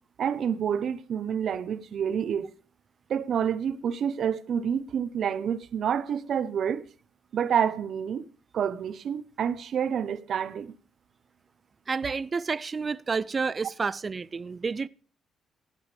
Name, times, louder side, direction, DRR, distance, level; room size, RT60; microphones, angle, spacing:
voice 1, 0.2-2.5 3.1-6.8 7.3-8.2 8.5-10.7, right 8 dB, 60° right, 0.9 m, -28 dB
voice 2, 11.9-14.9, right 4 dB, 35° right, 0.4 m, -30 dB
14.0 x 10.5 x 3.4 m
cardioid pair, 90°, 0 cm